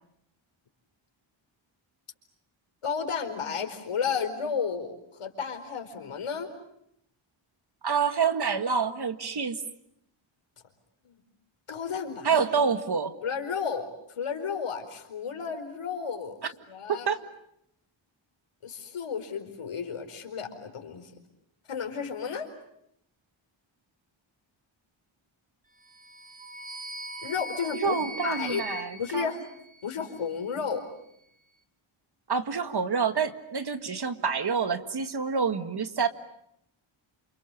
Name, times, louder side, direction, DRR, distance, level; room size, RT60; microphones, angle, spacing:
voice 1, 2.8-6.5 11.0-11.2 11.7-12.5 13.2-13.9 14.2-16.4 16.7-17.1 18.6-21.1 21.7-22.5 27.2-27.9 28.2-28.6 29.0-29.5 29.8-30.9, left 6 dB, 85° left, 5 dB, 4.7 m, -32 dB
voice 2, 7.8-9.6 12.2-13.1 16.9-17.2 27.7-29.3 32.3-36.1, right 6 dB, 50° right, 10 dB, 1.9 m, -27 dB
sound 1, 25.8-30.1, right 1 dB, 15° right, 2.7 m, -40 dB
29.5 x 28.0 x 7.0 m, 0.76 s
wide cardioid pair, 140°, 50 cm